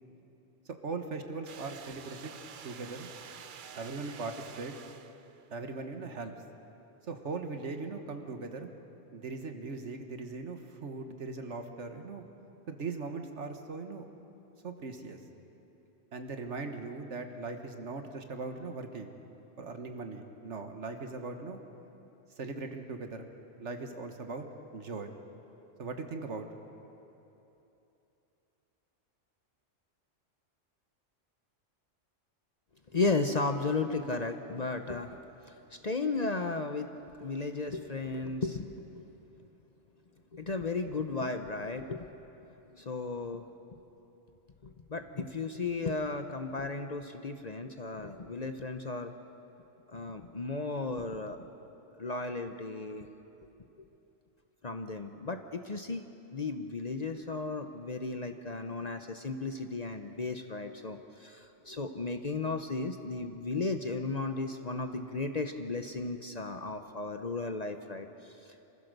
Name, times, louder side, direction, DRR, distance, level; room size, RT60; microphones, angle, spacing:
voice 1, 0.7-2.4 2.6-3.1 3.7-4.7 5.5-6.4 7.1-8.7 9.1-12.2 12.7-14.0 14.6-15.2 16.1-19.1 19.6-21.6 22.4-23.3 23.6-24.5 24.7-25.2 25.8-26.5, right 3 dB, 70° right, 6 dB, 1.6 m, -39 dB
sound 1, 1.5-5.5, right 7 dB, 50° right, 0.7 m, -49 dB
voice 2, 32.9-35.2 35.4-36.9 37.2-39.0 40.3-42.1 42.7-43.8 44.6-49.1 49.9-51.4 51.9-53.1 54.6-56.1 56.3-68.7, left 3 dB, 40° left, 7 dB, 0.8 m, -35 dB
27.0 x 15.0 x 6.6 m, 3.0 s
omnidirectional pair, 1.3 m